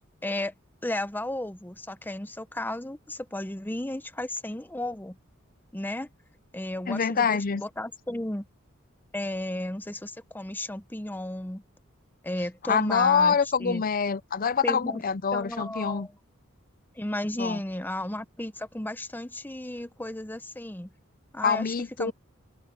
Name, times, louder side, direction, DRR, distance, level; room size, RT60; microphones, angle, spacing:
voice 1, 0.2-0.5 0.8-5.2 5.7-6.1 6.5-8.4 9.1-11.6 12.2-13.8 14.6-15.0 15.3-16.1 17.0-20.9 21.3-21.7 22.0-22.1, left 1 dB, 10° left, 0.8 m, -34 dB
voice 2, 6.9-7.6 12.7-16.1 17.4-17.6 21.4-22.1, left 6 dB, 45° left, 0.6 m, -25 dB
open air
head